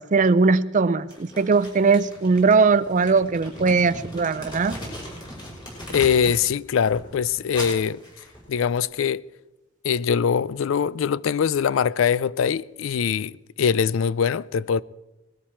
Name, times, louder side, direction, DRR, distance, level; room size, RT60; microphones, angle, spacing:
voice 1, 0.0-4.8, right 4 dB, 40° right, 0.4 m, -20 dB
Crumpling crinkling, 1.1-6.5 6.8-8.8, equal, 25° left, 5.7 m, -38 dB
voice 2, 5.9-8.0 8.5-9.2 9.8-13.3 13.6-14.8, left 7 dB, 80° left, 0.4 m, -22 dB
20.0 x 13.0 x 4.4 m
head